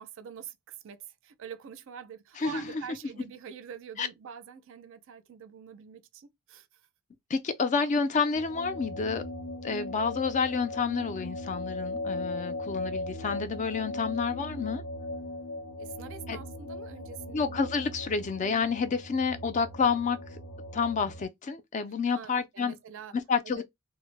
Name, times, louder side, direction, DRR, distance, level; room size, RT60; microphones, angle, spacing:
voice 1, 0.0-6.7 15.8-17.6 22.1-23.1 23.4-23.6, right 8 dB, 60° right, 0.4 m, -45 dB
voice 2, 7.3-9.2 9.6-14.8 16.3-16.4 17.3-20.2 20.7-22.8 23.3-23.6, left 5 dB, 35° left, 0.3 m, -29 dB
sound 1, 8.3-21.2, left 1 dB, 75° left, 0.7 m, -38 dB
2.1 x 2.0 x 3.1 m
head